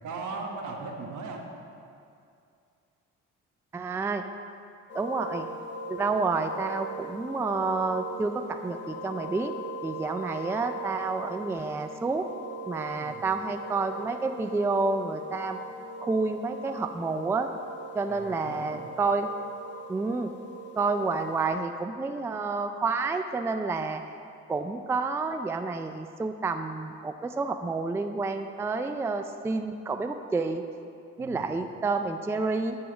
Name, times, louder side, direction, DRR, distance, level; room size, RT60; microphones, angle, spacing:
voice 1, 0.0-1.4 13.0-13.2 18.1-18.8 31.2-31.5, right 4 dB, 75° right, 1 dB, 1.2 m, -38 dB
voice 2, 3.7-4.2 4.9-5.5 5.9-9.5 9.8-12.3 12.7-15.6 16.0-17.5 17.9-19.3 19.9-20.3 20.8-24.0 24.5-30.6 31.2-32.8, right 3 dB, 10° right, 7 dB, 0.3 m, -29 dB
sound 1, 4.9-21.5, right 1 dB, 40° left, 1.3 m, -40 dB
9.6 x 3.5 x 6.9 m, 2.4 s
cardioid pair, 90°, 30 cm